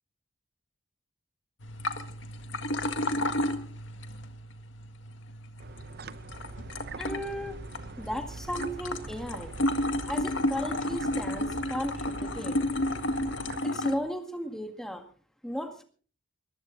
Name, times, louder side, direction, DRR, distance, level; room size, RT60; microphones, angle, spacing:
sound 1, 1.6-13.9, left 1 dB, 70° left, 1.8 m, -32 dB
sound 2, 5.6-13.6, right 3 dB, 50° right, 0.7 m, -43 dB
voice 1, 7.0-7.6 8.0-9.6 10.1-12.6 13.6-15.0 15.4-15.8, equal, ahead, 6 dB, 1.8 m, -35 dB
20.5 x 14.5 x 3.9 m, 0.41 s
head